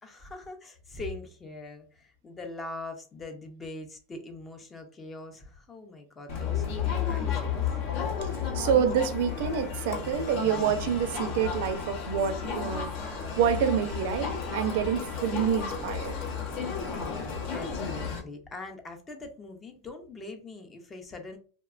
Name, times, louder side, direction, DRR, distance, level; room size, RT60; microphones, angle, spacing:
voice 1, 0.0-7.8 16.6-21.4, left 2 dB, 20° left, 0.5 m, -42 dB
Crowd, 6.3-18.2, left 6 dB, 60° left, 0.7 m, -32 dB
voice 2, 8.2-16.1, right 8 dB, 65° right, 0.4 m, -28 dB
2.7 x 2.1 x 2.4 m
supercardioid pair, 130°, 0 cm